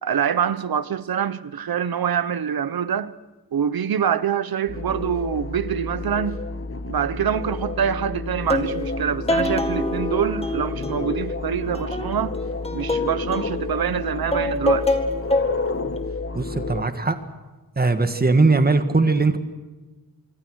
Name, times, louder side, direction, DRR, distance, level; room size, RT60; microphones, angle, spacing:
voice 1, 0.0-3.1 3.5-6.4 6.9-12.4 12.7-14.9, right 8 dB, 85° right, 1.1 m, -25 dB
sound 1, 4.7-16.8, left 3 dB, 40° left, 1.4 m, -30 dB
sound 2, 8.5-11.3 11.6-13.5 14.1-15.7 16.0-16.1, left 1 dB, 15° left, 2.2 m, -25 dB
voice 2, 16.3-17.2 17.8-19.4, right 3 dB, 25° right, 1.8 m, -19 dB
26.5 x 23.5 x 6.4 m
wide cardioid pair, 150°, 35 cm